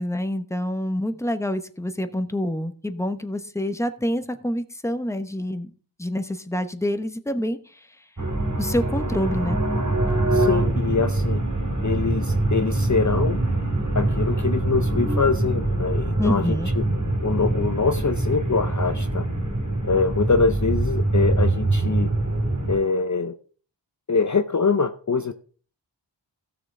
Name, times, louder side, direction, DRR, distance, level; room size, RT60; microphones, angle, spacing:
voice 1, 0.0-5.7 6.0-7.9 8.6-9.6 16.2-16.7, left 1 dB, 5° left, 0.9 m, -27 dB
sound 1, 8.2-22.8, right 2 dB, 40° right, 3.3 m, -24 dB
voice 2, 10.3-11.4 11.8-13.4 13.9-16.8 17.2-19.3 19.8-22.1 22.7-23.3 24.1-25.3, left 4 dB, 40° left, 0.6 m, -24 dB
15.5 x 6.5 x 3.7 m
wide cardioid pair, 40°, 44 cm